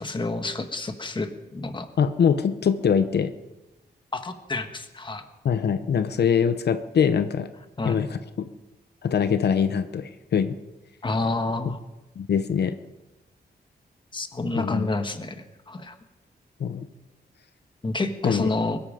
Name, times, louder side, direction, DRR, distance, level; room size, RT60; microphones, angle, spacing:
voice 1, 0.0-1.9 4.1-5.2 7.8-8.0 11.0-11.8 14.1-16.0 17.8-18.8, left 2 dB, 30° left, 7 dB, 1.3 m, -29 dB
voice 2, 2.0-3.3 5.4-7.5 7.8-8.5 9.0-10.6 12.2-12.8 14.5-14.9 16.6-16.9 18.2-18.5, left 7 dB, 75° left, 10 dB, 0.8 m, -23 dB
22.0 x 13.0 x 5.1 m, 1.0 s
wide cardioid pair, 135°, 17 cm